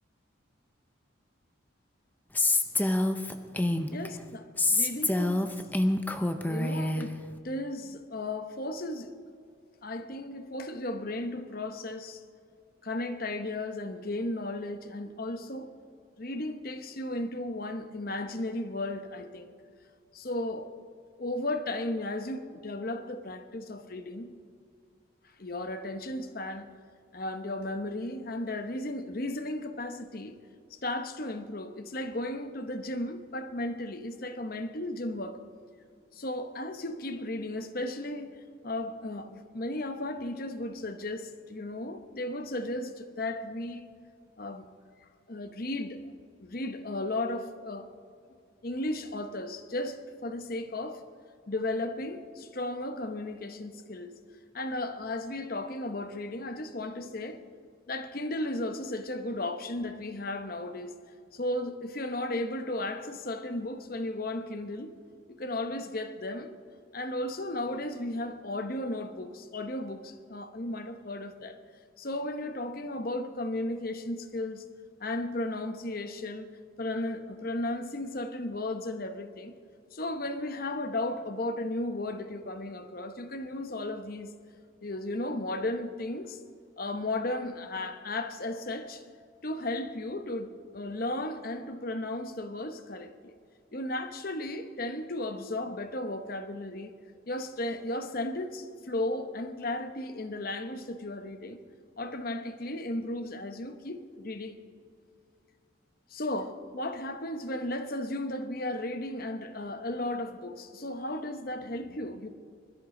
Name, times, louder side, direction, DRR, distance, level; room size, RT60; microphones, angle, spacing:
Female speech woman speaking, 2.4-4.1 4.6-7.1, left 2 dB, 10° left, 0.6 m, -26 dB
voice 1, 3.9-5.5 6.5-7.2 7.4-9.1 9.8-12.2 12.8-15.7 16.2-19.5 20.1-20.7 21.2-24.3 25.4-26.7 27.1-30.4 30.7-35.4 36.1-38.4 38.6-43.9 44.4-44.6 45.3-46.0 46.4-47.9 48.6-51.0 51.5-54.2 54.5-57.4 57.9-61.0 61.3-64.9 65.3-66.5 66.9-71.6 72.0-74.6 75.0-76.5 76.8-79.5 79.9-84.3 84.8-86.4 86.8-89.0 89.4-93.3 93.7-96.9 97.3-101.6 102.0-104.6 106.1-112.3, left 1 dB, 45° left, 0.9 m, -35 dB
21.5 x 13.5 x 3.8 m
head